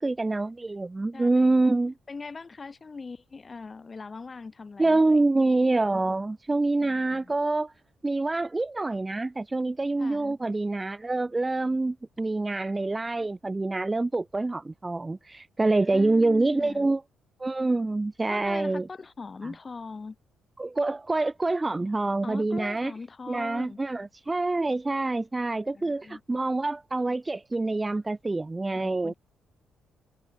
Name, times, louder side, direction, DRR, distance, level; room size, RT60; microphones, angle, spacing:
voice 1, 0.0-1.9 4.8-7.7 8.0-17.0 17.4-18.9 20.6-22.9 23.3-29.1, right 2 dB, 20° right, 0.3 m, -26 dB
voice 2, 1.1-1.5 2.1-5.2 6.8-7.3 10.0-10.4 15.9-16.9 18.3-20.2 22.2-23.8 25.7-26.2 28.8-29.1, left 4 dB, 30° left, 2.0 m, -40 dB
cardioid pair, 90°, 0 cm